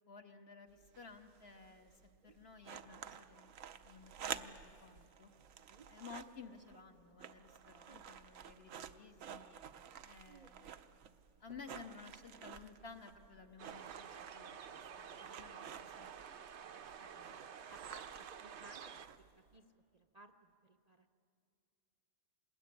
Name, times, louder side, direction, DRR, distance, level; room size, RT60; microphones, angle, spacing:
voice 1, 0.1-1.9 2.2-3.5 3.8-5.3 5.9-9.6 10.0-10.8 11.4-15.7 16.0-16.1 17.0-17.4, left 5 dB, 50° left, 4 dB, 1.7 m, -55 dB
sound 1, 0.7-19.6, right 8 dB, 80° right, 1.2 m, -52 dB
voice 2, 7.9-8.2 10.2-10.5 11.0-11.4 14.1-14.2 17.7-21.1, right 2 dB, 35° right, 4 dB, 0.7 m, -61 dB
sound 2, 13.6-19.1, right 7 dB, 60° right, 1.0 m, -51 dB
25.5 x 20.5 x 9.8 m, 2.5 s
omnidirectional pair, 1.4 m